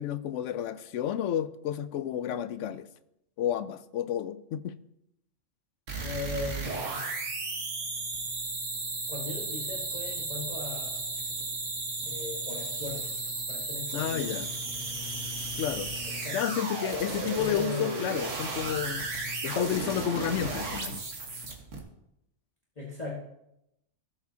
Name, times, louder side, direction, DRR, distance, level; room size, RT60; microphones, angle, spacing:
voice 1, 0.0-2.9 3.4-4.8 13.9-14.5 15.6-15.9 16.3-19.1 19.4-21.0, left 10 dB, 75° left, 0.9 m, -31 dB
sound 1, 5.9-21.8, right 3 dB, 80° right, 1.8 m, -34 dB
voice 2, 6.0-7.0 9.1-11.0 12.0-13.1 13.5-14.4 16.0-16.6 17.1-17.9 22.8-23.2, left 3 dB, 30° left, 1.6 m, -38 dB
17.0 x 7.0 x 2.8 m
omnidirectional pair, 1.3 m